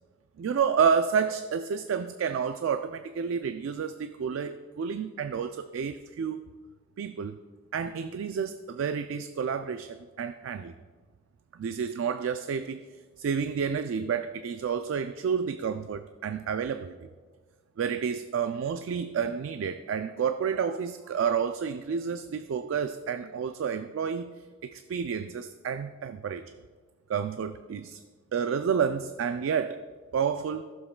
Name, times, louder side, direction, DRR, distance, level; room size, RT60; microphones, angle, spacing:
voice 1, 0.4-6.4 7.0-7.4 7.7-10.7 11.5-12.8 13.2-17.0 17.8-24.3 24.6-26.5 27.1-28.0 28.3-29.8 30.1-30.7, right 6 dB, 85° right, 10 dB, 0.3 m, -30 dB
14.0 x 7.3 x 2.2 m, 1.5 s
head